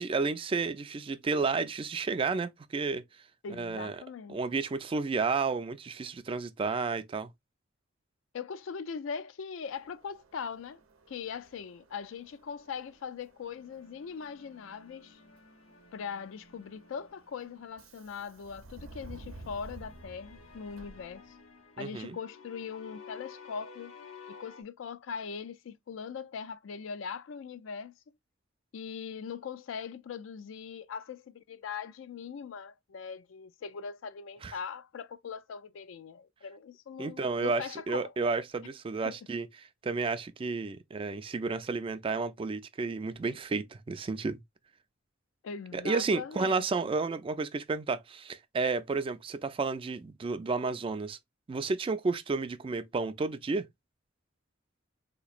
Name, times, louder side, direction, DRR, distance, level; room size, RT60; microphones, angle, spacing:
voice 1, 0.0-3.0 3.6-4.0 4.3-7.3 21.8-22.2 34.4-34.6 37.0-44.4 45.7-51.2 51.5-53.7, right 4 dB, 25° right, 0.3 m, -32 dB
voice 2, 3.4-4.4 8.3-10.8 11.1-15.2 15.9-21.2 21.8-23.9 24.4-27.9 28.7-38.1 39.0-39.2 45.4-46.7, left 6 dB, 65° left, 0.4 m, -41 dB
Subway metro underground, 9.7-21.6, right 2 dB, 90° right, 0.7 m, -53 dB
sound 1, 13.4-17.8 19.2-24.6, left 5 dB, 85° left, 0.8 m, -53 dB
4.1 x 2.9 x 2.4 m
head